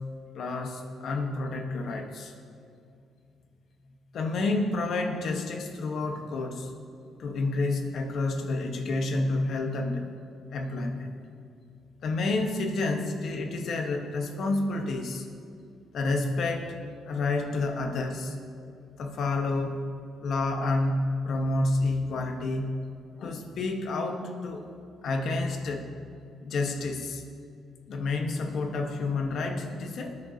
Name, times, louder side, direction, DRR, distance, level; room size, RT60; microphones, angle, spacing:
voice 1, 0.3-2.3 4.1-6.7 7.2-10.1 10.5-11.1 12.0-15.3 15.9-16.8 17.0-18.4 19.0-19.8 20.2-22.8 23.2-24.7 25.0-25.9 26.4-27.2 27.9-30.2, left 2 dB, 65° left, 4 dB, 1.3 m, -29 dB
19.0 x 9.8 x 2.8 m, 2.4 s
cardioid pair, 90°, 0 cm